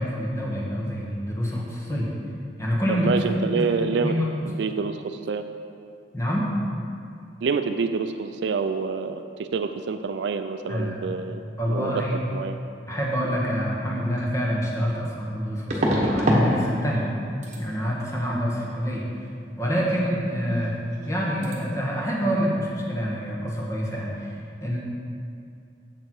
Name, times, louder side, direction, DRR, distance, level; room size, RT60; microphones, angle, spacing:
voice 1, 0.0-2.1 2.6-3.1 3.7-4.3 6.1-6.5 10.7-11.0 11.6-12.2 12.9-17.1 17.6-19.3 19.6-20.8 21.0-24.3 24.6-24.8, equal, 15° left, -3 dB, 1.3 m, -27 dB
voice 2, 2.9-4.1 4.5-5.4 7.4-11.4 11.7-12.0 12.3-12.6, right 5 dB, 70° right, 8 dB, 0.4 m, -27 dB
sound 1, 14.2-14.3 15.7-16.5 16.8-17.2 17.4-17.6 20.5-20.7 20.9-21.2 21.4-21.6, equal, 40° right, 1.2 m, -24 dB
7.5 x 6.6 x 4.6 m, 2.4 s
head